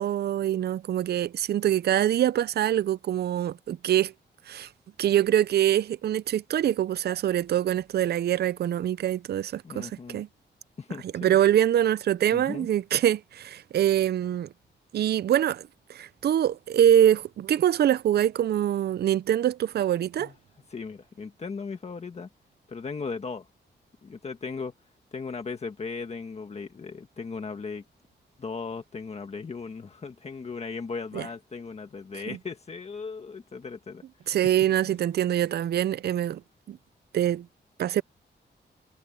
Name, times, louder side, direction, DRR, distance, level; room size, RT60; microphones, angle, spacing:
voice 1, 0.0-4.1 4.5-4.7 5.0-10.3 11.1-14.5 14.9-20.3 31.1-31.3 32.3-32.4 34.3-36.4 36.7-36.8 37.1-37.5 37.8-38.0, right 11 dB, 60° right, 0.4 m, -24 dB
voice 2, 9.6-10.2 10.8-11.4 12.3-12.7 20.2-20.3 20.7-22.3 22.7-23.5 24.0-24.7 25.1-27.8 28.4-34.0 34.8-34.9, left 4 dB, 35° left, 1.5 m, -37 dB
wide cardioid pair, 180°, 19 cm